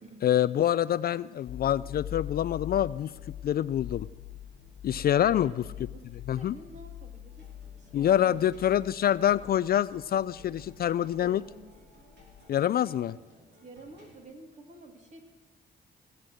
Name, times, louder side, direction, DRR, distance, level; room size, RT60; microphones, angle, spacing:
voice 1, 0.2-3.1 3.4-4.1 4.8-5.5 6.3-6.5 7.9-11.4 12.5-13.2, left 11 dB, 50° left, 17 dB, 0.4 m, -26 dB
sound 1, 1.5-12.4, left 12 dB, 80° left, 1.1 m, -44 dB
voice 2, 5.3-8.5 11.2-11.8 13.6-15.2, right 2 dB, 35° right, 3 dB, 3.0 m, -50 dB
sound 2, 7.3-14.2, left 1 dB, 60° right, 5.3 m, -58 dB
17.5 x 8.2 x 7.7 m, 1.2 s
cardioid pair, 90°, 20 cm